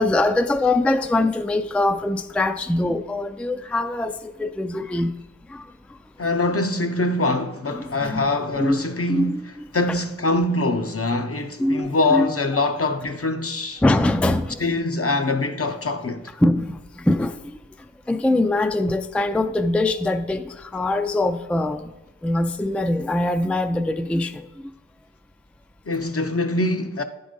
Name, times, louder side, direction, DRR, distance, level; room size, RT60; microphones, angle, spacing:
voice 1, 0.0-5.1 5.5-5.7 7.7-8.3 8.6-8.8 9.1-10.0 11.6-12.3 13.8-14.8 16.4-17.6 18.1-21.9 22.2-24.5, left 2 dB, 5° left, 0.3 m, -23 dB
voice 2, 6.2-9.4 9.7-13.8 14.6-16.3 25.9-27.0, left 2 dB, 50° left, 0.7 m, -23 dB
10.5 x 3.9 x 5.1 m
wide cardioid pair, 40°, 30 cm